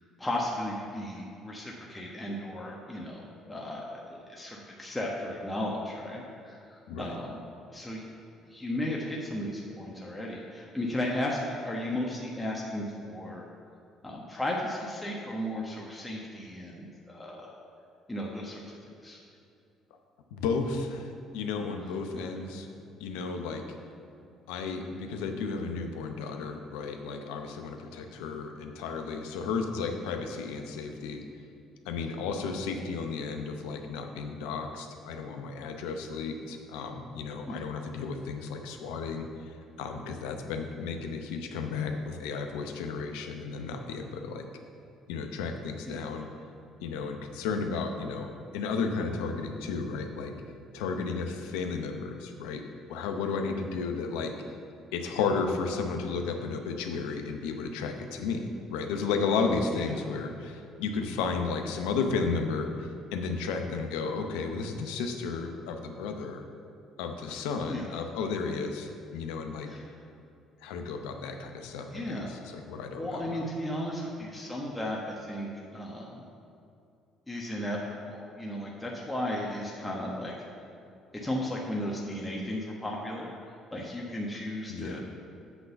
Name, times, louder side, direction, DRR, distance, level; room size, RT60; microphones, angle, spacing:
voice 1, 0.2-7.4 7.7-8.0 8.5-13.4 14.0-17.5 18.1-18.6 19.0-19.2 37.4-37.6 45.8-46.1 67.3-67.4 67.7-68.0 69.7-69.8 71.9-72.3 72.9-76.2 77.3-77.8 78.1-80.3 81.2-83.3 83.7-85.0, left 1 dB, 15° left, -3 dB, 1.2 m, -35 dB
voice 2, 6.9-7.2 20.3-22.7 23.0-23.8 24.5-31.2 31.8-44.5 45.1-46.3 46.8-50.3 50.7-52.6 52.9-54.3 54.9-66.4 67.0-69.7 70.6-73.2 84.7-85.0, left 4 dB, 80° left, 5 dB, 0.7 m, -33 dB
8.2 x 3.9 x 6.8 m, 2.5 s
hypercardioid pair, 60°, 0 cm